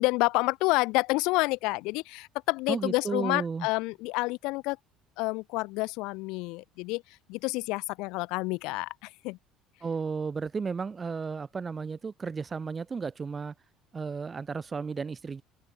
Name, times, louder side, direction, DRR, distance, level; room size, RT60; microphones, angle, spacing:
voice 1, 0.0-4.8 5.2-7.0 7.3-9.4, left 24 dB, 80° left, 2.5 m, -29 dB
voice 2, 2.7-3.7 9.8-13.5 13.9-15.4, right 5 dB, 25° right, 6.4 m, -33 dB
supercardioid pair, 100°, 0 cm